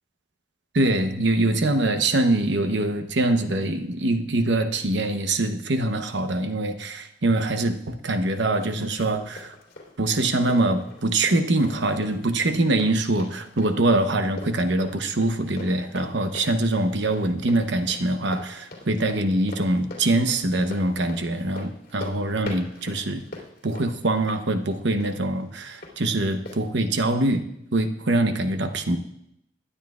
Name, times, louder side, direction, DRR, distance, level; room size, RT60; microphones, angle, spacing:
voice 1, 0.7-9.5 10.0-23.2 23.6-27.4 27.7-29.0, right 2 dB, 85° right, 8 dB, 0.9 m, -24 dB
Run, 8.1-25.9 26.5-26.6, left 2 dB, 60° left, 2.9 m, -43 dB
22.0 x 10.0 x 2.4 m, 0.78 s
head